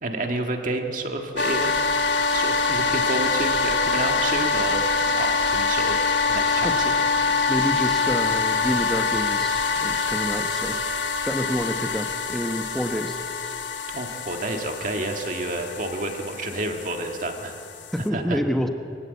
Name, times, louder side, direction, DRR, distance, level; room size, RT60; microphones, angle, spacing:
voice 1, 0.0-1.7 2.3-7.0 13.9-17.5 18.1-18.4, right 2 dB, 45° right, 3 dB, 1.8 m, -30 dB
sound 1, 1.4-18.1, left 4 dB, 80° left, 1.3 m, -25 dB
voice 2, 7.5-10.8 11.3-13.2 13.5-13.6 17.9-18.7, equal, ahead, 6 dB, 1.0 m, -28 dB
23.5 x 15.5 x 8.3 m, 2.6 s
head